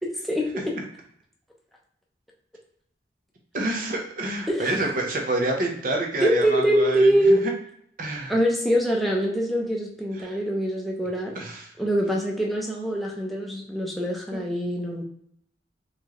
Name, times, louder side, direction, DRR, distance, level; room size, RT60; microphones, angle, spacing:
voice 1, 0.0-0.7 4.5-4.7 6.2-7.5 8.3-11.4 11.8-15.0, equal, ahead, -2 dB, 0.7 m, -24 dB
voice 2, 3.5-7.5 8.0-8.3 10.2-10.4 11.3-11.7 14.3-14.4, right 2 dB, 50° right, 1 dB, 0.8 m, -28 dB
4.2 x 3.1 x 3.0 m, 0.69 s
head